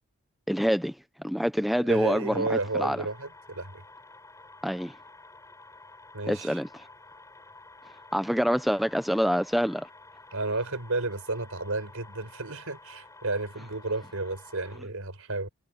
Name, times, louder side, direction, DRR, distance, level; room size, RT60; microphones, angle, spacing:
voice 1, 0.5-1.0 1.2-3.0 4.6-4.9 6.3-6.7 8.1-9.9, equal, ahead, 0.7 m, -26 dB
voice 2, 1.8-3.8 6.1-6.6 10.3-15.5, right 2 dB, 80° right, 4.5 m, -32 dB
sound 1, 1.9-14.8, left 3 dB, 15° left, 5.2 m, -51 dB
head